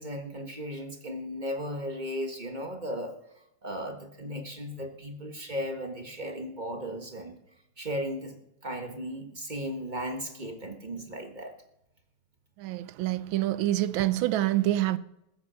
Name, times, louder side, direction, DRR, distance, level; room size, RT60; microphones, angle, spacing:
voice 1, 0.0-3.1 3.6-7.4 7.8-11.5, equal, 25° right, 1.3 m, -36 dB
voice 2, 12.6-15.0, right 15 dB, 75° right, 1.3 m, -26 dB
20.0 x 8.4 x 5.6 m
omnidirectional pair, 2.4 m